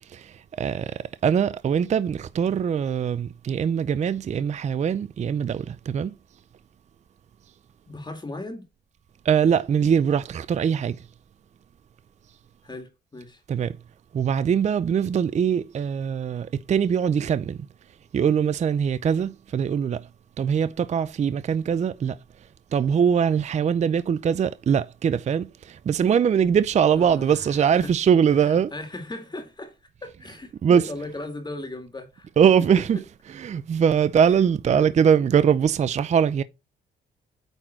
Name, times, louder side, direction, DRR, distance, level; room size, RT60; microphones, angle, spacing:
voice 1, 0.1-6.1 9.3-11.0 13.5-13.7 14.1-17.6 18.1-20.0 20.4-22.2 22.7-28.7 30.6-30.8 32.4-33.0 33.4-36.4, right 7 dB, 35° right, 0.4 m, -22 dB
voice 2, 7.9-8.7 12.6-13.4 26.9-27.9 28.4-32.3 32.8-32.9 34.3-34.4 34.7-35.0, left 2 dB, 20° left, 2.1 m, -37 dB
9.1 x 4.0 x 4.3 m
cardioid pair, 90°, 20 cm